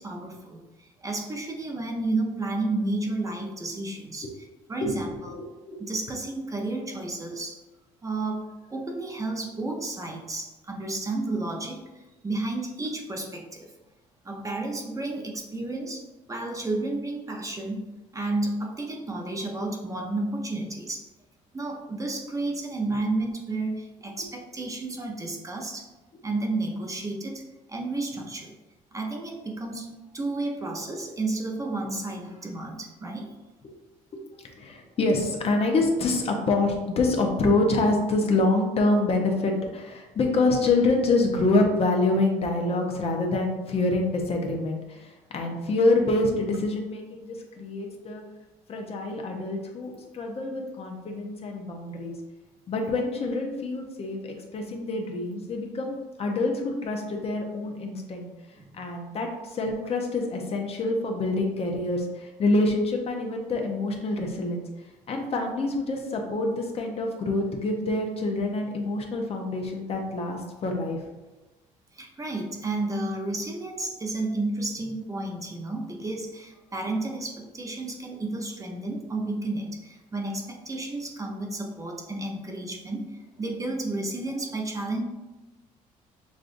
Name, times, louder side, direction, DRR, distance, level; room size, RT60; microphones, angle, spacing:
voice 1, 0.0-4.3 4.7-5.4 5.8-7.6 8.0-11.8 12.2-13.7 14.2-16.0 16.3-17.9 18.1-21.1 21.5-25.9 26.2-27.4 27.7-28.5 28.9-33.3 58.6-58.7 71.9-85.0, right 2 dB, 25° right, 1 dB, 0.7 m, -32 dB
voice 2, 4.8-5.2 5.7-5.9 33.6-33.7 34.1-34.2 34.6-48.2 48.7-52.1 52.7-58.3 58.7-64.6 65.1-71.0, left 2 dB, 45° left, 2 dB, 0.8 m, -26 dB
6.2 x 2.4 x 2.5 m, 1.1 s
cardioid pair, 100°, 14 cm